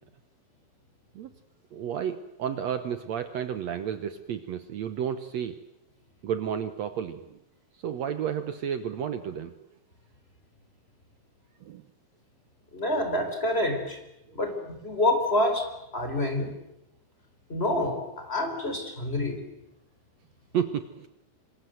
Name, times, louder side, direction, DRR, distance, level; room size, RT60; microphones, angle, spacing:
voice 1, 1.7-5.6 6.2-7.4 7.8-9.6 11.6-11.8 20.5-21.1, right 8 dB, 65° right, 10 dB, 2.1 m, -32 dB
voice 2, 12.7-14.0 14.3-16.5 17.5-19.4, left 1 dB, 20° left, 5 dB, 4.5 m, -27 dB
27.0 x 26.0 x 7.9 m, 0.86 s
omnidirectional pair, 3.6 m